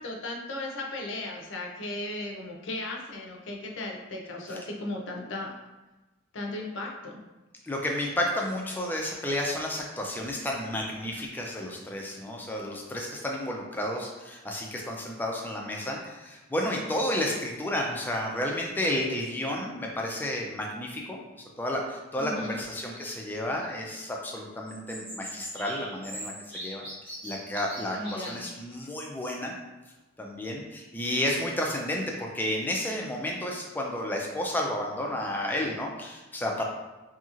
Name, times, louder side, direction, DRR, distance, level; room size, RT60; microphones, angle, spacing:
voice 1, 0.0-5.5 6.3-7.2 22.1-22.6 27.9-28.4, left 2 dB, 75° left, 0 dB, 0.5 m, -36 dB
voice 2, 7.6-21.2 21.6-26.8 27.2-29.5 30.2-36.6, left 1 dB, 10° left, -1 dB, 0.3 m, -31 dB
sound 1, 22.4-23.8 24.7-28.9, equal, 30° right, 0.9 m, -42 dB
2.8 x 2.8 x 2.4 m, 1.1 s
head